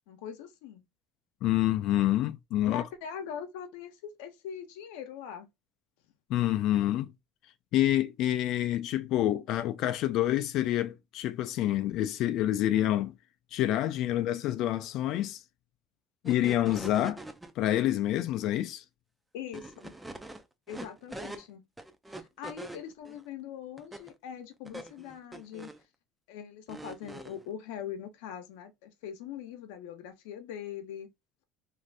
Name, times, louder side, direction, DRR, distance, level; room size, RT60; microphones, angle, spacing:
voice 1, 0.1-0.8 2.7-5.5 19.3-19.9 20.7-21.6 22.1-25.7 26.3-31.1, left 8 dB, 90° left, 0.7 m, -42 dB
voice 2, 1.4-2.8 6.3-7.1 7.7-13.1 13.5-15.4 16.2-17.2 17.6-18.8, left 13 dB, 60° left, 0.3 m, -27 dB
sound 1, 16.3-17.5 19.5-21.5 21.8-23.2 23.8-24.1 24.7-25.8 26.7-27.4, right 1 dB, 10° right, 0.4 m, -43 dB
2.6 x 2.5 x 3.3 m
supercardioid pair, 115°, 0 cm